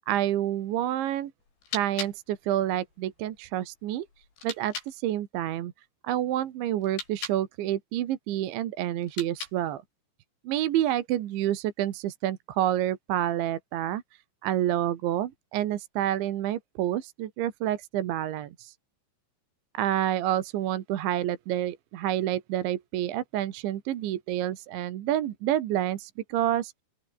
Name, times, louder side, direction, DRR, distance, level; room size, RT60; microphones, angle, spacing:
voice 1, 0.1-1.3 1.7-4.1 4.4-5.7 6.0-9.8 10.5-14.0 14.4-18.7 19.8-26.8, right 12 dB, 75° right, 3.9 m, -28 dB
sound 1, 1.4-5.0 6.8-7.5 9.0-9.8, left 4 dB, 65° left, 10.5 m, -41 dB
open air
omnidirectional pair, 5.5 m